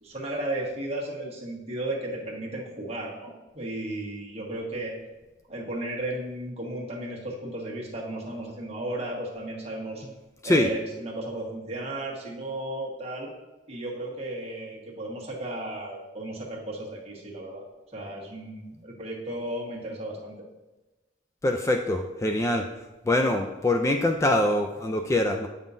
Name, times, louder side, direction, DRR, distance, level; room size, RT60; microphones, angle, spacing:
voice 1, 0.0-4.9 5.5-10.0 10.4-13.3 13.7-17.6 17.9-20.3, right 1 dB, 35° right, -3 dB, 1.3 m, -34 dB
voice 2, 21.4-22.7 23.1-25.5, left 1 dB, 15° left, 4 dB, 0.3 m, -24 dB
8.2 x 5.5 x 2.6 m, 1.1 s
head